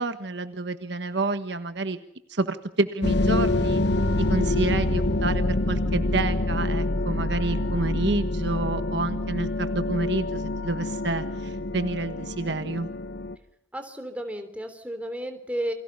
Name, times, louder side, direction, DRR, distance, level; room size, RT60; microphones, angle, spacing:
voice 1, 0.0-2.0 2.3-3.8 4.3-12.9, right 3 dB, 55° right, 9 dB, 1.4 m, -29 dB
sound 1, 3.0-13.3, left 2 dB, 55° left, 1.2 m, -26 dB
voice 2, 13.7-15.7, right 1 dB, 5° right, 6 dB, 3.3 m, -32 dB
29.5 x 24.0 x 5.5 m, 0.79 s
head